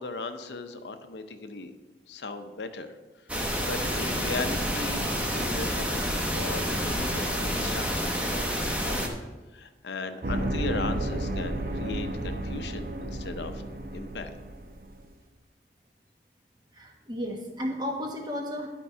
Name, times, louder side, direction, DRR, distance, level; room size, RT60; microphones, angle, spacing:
voice 1, 0.0-1.7 2.1-3.0 3.6-9.2 9.5-13.6 13.9-14.3, left 3 dB, 80° left, 8 dB, 0.7 m, -37 dB
sound 1, 3.3-9.1, equal, 5° right, 0.9 m, -29 dB
sound 2, 10.2-15.0, right 1 dB, 50° right, 0.9 m, -32 dB
voice 2, 16.7-18.7, equal, 25° right, 1 dB, 1.2 m, -33 dB
11.5 x 4.6 x 5.5 m, 1.2 s
head